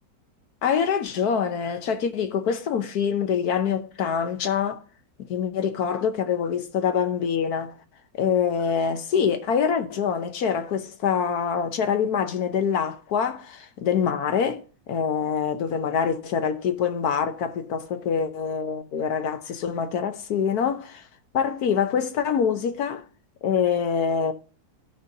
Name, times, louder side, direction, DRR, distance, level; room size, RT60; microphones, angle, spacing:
voice 1, 0.6-4.8 5.3-7.7 8.2-14.6 14.9-21.0 21.3-23.0 23.4-24.3, left 7 dB, 65° left, 1.2 m, -25 dB
16.5 x 5.6 x 2.7 m
omnidirectional pair, 1.9 m